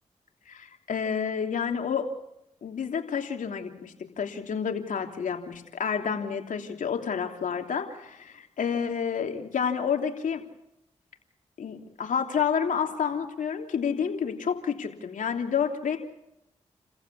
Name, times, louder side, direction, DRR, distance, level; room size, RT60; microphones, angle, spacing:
voice 1, 0.5-2.0 2.6-10.4 11.6-16.0, left 7 dB, 75° left, 3 dB, 3.2 m, -29 dB
30.0 x 15.0 x 8.4 m, 0.83 s
supercardioid pair, 40°, 13 cm